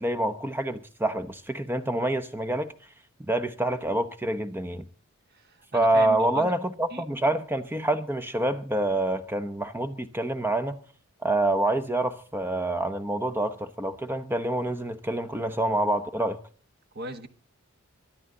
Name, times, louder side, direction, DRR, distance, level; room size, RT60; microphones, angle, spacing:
voice 1, 0.0-2.7 3.2-4.9 5.7-10.8 11.2-16.4, right 1 dB, 10° right, 0.9 m, -27 dB
voice 2, 5.3-6.6 6.9-7.0 16.9-17.3, right 2 dB, 45° right, 1.2 m, -38 dB
23.5 x 11.0 x 3.9 m
head